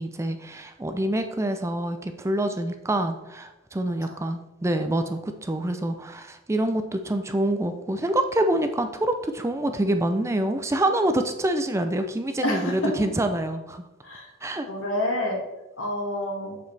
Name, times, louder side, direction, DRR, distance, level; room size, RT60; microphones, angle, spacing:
voice 1, 0.0-13.8 14.4-14.7, right 1 dB, 15° right, 7 dB, 0.4 m, -26 dB
voice 2, 12.4-12.7 14.0-14.3 14.7-15.4 15.8-16.6, left 1 dB, 85° left, 0 dB, 1.8 m, -28 dB
7.0 x 6.6 x 3.3 m, 0.96 s
head